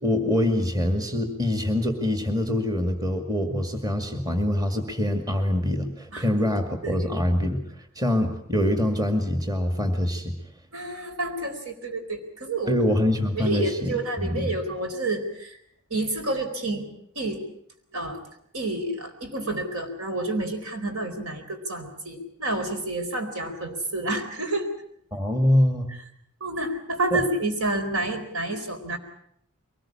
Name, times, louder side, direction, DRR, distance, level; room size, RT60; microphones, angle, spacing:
voice 1, 0.0-7.6 8.0-10.3 12.7-14.6 25.1-25.9 27.1-27.2, left 1 dB, 15° right, 6 dB, 2.1 m, -24 dB
voice 2, 10.7-12.8 13.3-15.6 15.9-16.9 17.1-17.4 17.9-18.2 18.5-24.7 26.4-29.0, right 2 dB, 70° right, 6 dB, 4.2 m, -29 dB
23.5 x 20.0 x 8.6 m, 0.68 s
head